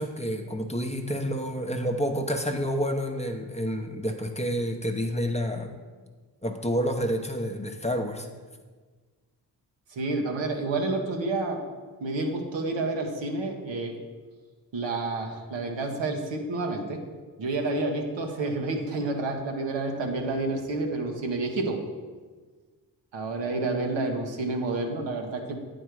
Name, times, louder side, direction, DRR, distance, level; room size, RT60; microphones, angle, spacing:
voice 1, 0.0-5.7 6.4-8.3, equal, 15° left, 4 dB, 0.8 m, -29 dB
voice 2, 9.9-11.6 12.0-13.9 14.7-17.0 17.4-21.8 23.1-25.6, right 2 dB, 70° right, 2 dB, 1.2 m, -29 dB
9.0 x 4.3 x 4.8 m, 1.4 s
supercardioid pair, 40°, 45 cm